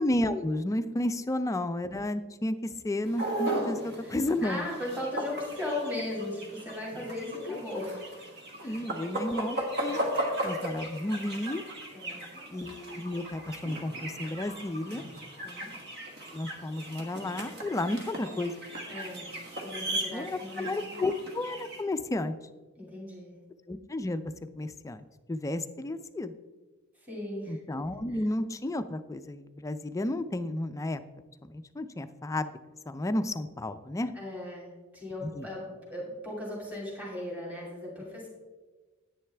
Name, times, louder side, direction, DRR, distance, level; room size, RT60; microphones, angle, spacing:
voice 1, 0.0-2.6 2.8-4.7 7.5-7.6 8.6-9.6 9.8-10.0 10.4-11.6 12.5-15.0 16.3-18.5 20.1-22.3 23.7-24.2 24.6-26.3 27.5-31.0 31.4-32.5 32.9-34.1 35.3-35.5, left 1 dB, 15° left, 10 dB, 0.3 m, -32 dB
sound 1, 3.1-21.8, right 1 dB, 50° right, 1.6 m, -37 dB
voice 2, 4.0-8.1 8.6-8.8 11.9-12.4 15.4-15.7 18.9-19.3 19.6-21.0 22.8-23.3 27.0-27.6 28.1-28.2 34.1-38.3, left 1 dB, 10° right, -4 dB, 2.4 m, -37 dB
9.8 x 9.1 x 3.3 m, 1.3 s
head